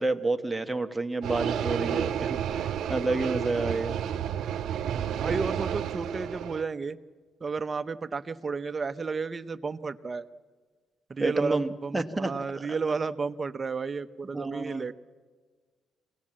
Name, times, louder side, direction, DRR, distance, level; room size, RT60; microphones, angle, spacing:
voice 1, 0.0-4.0 11.2-12.3 12.7-12.8 14.3-14.9, right 2 dB, 10° right, 6 dB, 1.2 m, -29 dB
sound 1, 1.2-6.6, right 9 dB, 75° right, 0.8 m, -31 dB
voice 2, 4.9-7.0 7.4-10.3 11.1-14.9, right 4 dB, 35° right, 12 dB, 0.7 m, -32 dB
25.0 x 18.0 x 7.5 m, 1.5 s
cardioid pair, 90°, 0 cm